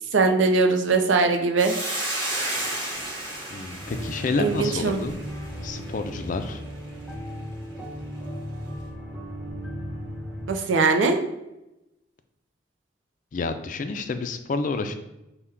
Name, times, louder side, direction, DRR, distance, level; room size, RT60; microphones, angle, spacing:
voice 1, 0.1-1.8 4.4-5.0 10.5-11.2, right 3 dB, 90° right, 5 dB, 0.5 m, -21 dB
Hiss, 1.6-6.1, right 1 dB, 25° right, 1.0 m, -32 dB
voice 2, 3.5-5.2 5.6-6.6 13.3-14.9, left 3 dB, 45° left, 8 dB, 0.3 m, -29 dB
sound 1, 3.8-10.5, equal, ahead, 0.7 m, -36 dB
5.5 x 2.2 x 3.5 m, 0.93 s
head